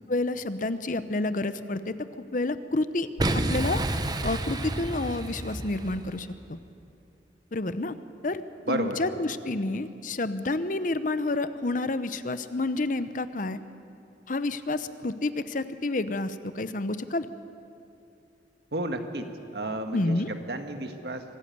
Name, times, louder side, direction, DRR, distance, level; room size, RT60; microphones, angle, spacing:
voice 1, 0.1-1.9 2.3-3.1 3.3-3.8 4.2-6.6 7.5-7.9 8.2-8.4 8.7-13.6 14.3-17.3 19.9-20.3, left 2 dB, 45° left, 12 dB, 0.8 m, -29 dB
Boom, 3.2-6.2, right 1 dB, 20° right, 0.9 m, -29 dB
voice 2, 8.7-9.0 18.7-19.3 19.5-21.2, right 1 dB, 65° right, 6 dB, 1.7 m, -32 dB
25.0 x 14.0 x 9.5 m, 2.7 s
head